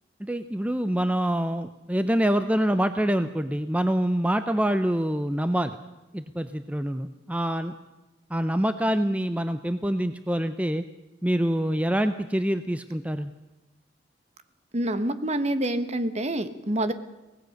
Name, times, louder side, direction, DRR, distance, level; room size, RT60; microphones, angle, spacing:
voice 1, 0.2-5.8 6.1-7.7 8.3-10.8 11.2-13.3, equal, 10° right, 10 dB, 0.6 m, -25 dB
voice 2, 14.7-16.9, right 1 dB, 35° right, 11 dB, 1.3 m, -27 dB
24.0 x 18.5 x 6.5 m, 1.1 s
head